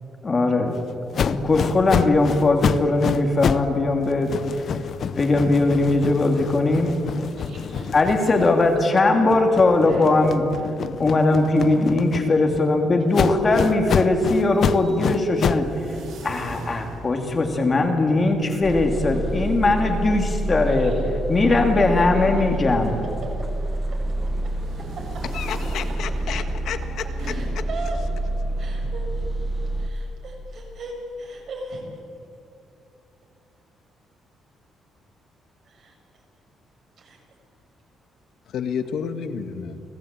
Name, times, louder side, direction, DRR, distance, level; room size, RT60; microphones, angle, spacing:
voice 1, 0.2-0.8 1.2-4.9 5.2-6.9 7.9-10.5 11.0-15.9 16.2-20.9 21.3-22.9, left 2 dB, 25° left, 2.3 m, -20 dB
sound 1, 1.1-3.7 4.0-8.8 9.2-12.6 13.1-15.7, left 7 dB, 45° left, 0.7 m, -28 dB
voice 2, 7.4-7.9 9.9-10.1 20.7-21.0 21.8-21.9 22.1-22.3 25.0-25.1 27.2-28.0 28.6-29.3 29.8-30.9 31.2-31.8 35.7-35.9 37.0-37.2, right 3 dB, 50° right, 7.1 m, -38 dB
sound 2, 14.2-30.0, right 1 dB, 85° right, 7.6 m, -43 dB
sound 3, 18.6-29.9, right 1 dB, 15° right, 1.4 m, -28 dB
voice 3, 25.3-27.0 27.5-27.6 38.5-39.8, left 7 dB, 65° left, 1.6 m, -30 dB
29.5 x 18.5 x 8.9 m
cardioid pair, 175°, 0 cm